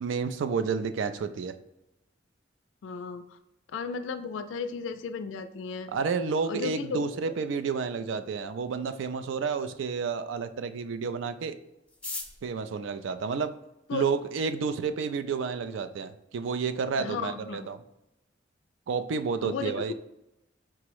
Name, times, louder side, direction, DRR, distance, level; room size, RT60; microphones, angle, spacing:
voice 1, 0.0-1.5 5.9-11.6 12.4-13.5 13.9-17.8 18.9-19.9, right 5 dB, 80° right, 10 dB, 0.4 m, -30 dB
voice 2, 2.8-3.4 3.7-5.9 6.5-7.0 13.9-14.0 17.0-17.7 19.4-19.7, left 5 dB, 85° left, 10 dB, 0.3 m, -34 dB
sound 1, 11.9-14.1 14.9-15.0 15.2-15.3 15.6-16.1 16.4-16.5 16.7-17.1 17.4-17.6 18.0-18.3, left 3 dB, 5° left, 0.4 m, -42 dB
4.6 x 2.0 x 4.5 m, 0.88 s
head